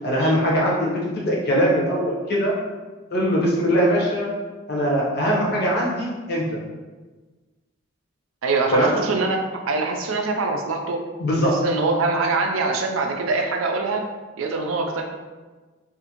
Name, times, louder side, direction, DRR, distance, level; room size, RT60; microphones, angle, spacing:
voice 1, 0.0-2.5 3.1-4.3 4.7-6.4 8.7-8.9 11.2-11.6, equal, 50° left, -4 dB, 0.7 m, -21 dB
voice 2, 8.4-11.0 11.5-14.0 14.4-15.0, right 3 dB, 80° right, 3 dB, 0.4 m, -24 dB
2.5 x 2.5 x 2.8 m, 1.3 s
head